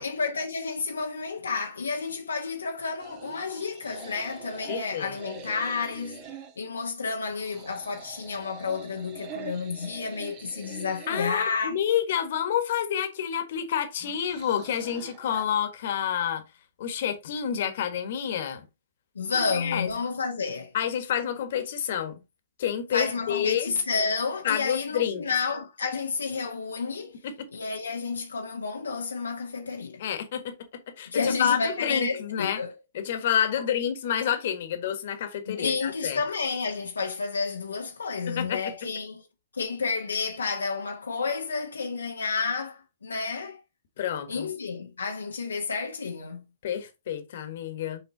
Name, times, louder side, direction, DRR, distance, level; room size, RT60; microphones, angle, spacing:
voice 1, 0.0-6.2 6.6-11.8 19.1-20.7 22.9-27.2 27.5-30.0 31.1-32.7 33.6-33.7 35.5-39.2 39.5-43.6 44.3-46.4, left 4 dB, 80° left, 1.0 m, -30 dB
sound 1, 3.0-6.6 7.3-11.5 14.0-15.4, right 7 dB, 40° right, 1.6 m, -44 dB
voice 2, 4.7-5.2 11.1-16.4 16.8-18.6 19.5-19.9 20.7-22.2 22.6-23.7 24.4-25.2 27.2-27.5 30.0-30.5 31.0-32.6 32.9-36.2 38.3-38.6 44.0-44.5 46.6-48.0, left 9 dB, 55° left, 1.5 m, -29 dB
6.7 x 4.3 x 3.9 m
figure-of-eight pair, 115°, 0 cm